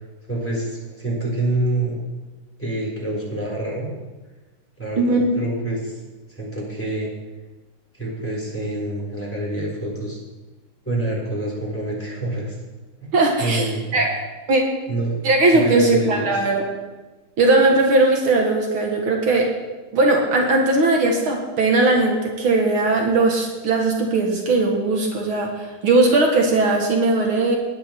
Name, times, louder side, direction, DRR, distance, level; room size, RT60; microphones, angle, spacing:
voice 1, 0.0-2.0 2.6-3.9 4.8-6.0 6.3-7.1 7.9-10.2 10.8-12.5 13.0-13.1 13.4-14.0 14.9-15.2 15.5-16.3, right 2 dB, 5° left, -4 dB, 3.9 m, -27 dB
voice 2, 13.1-14.2 14.5-14.6 15.2-16.6 17.4-19.5 19.9-27.6, right 2 dB, 75° right, 1 dB, 2.4 m, -18 dB
16.5 x 10.0 x 4.5 m, 1.2 s
omnidirectional pair, 2.3 m